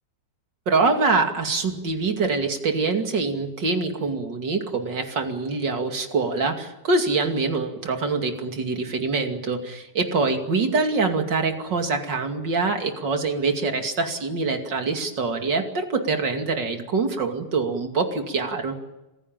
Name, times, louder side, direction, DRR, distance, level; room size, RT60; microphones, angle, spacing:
voice 1, 0.7-18.7, right 4 dB, 75° right, 4 dB, 3.2 m, -24 dB
26.0 x 16.5 x 9.0 m, 1.0 s
omnidirectional pair, 2.0 m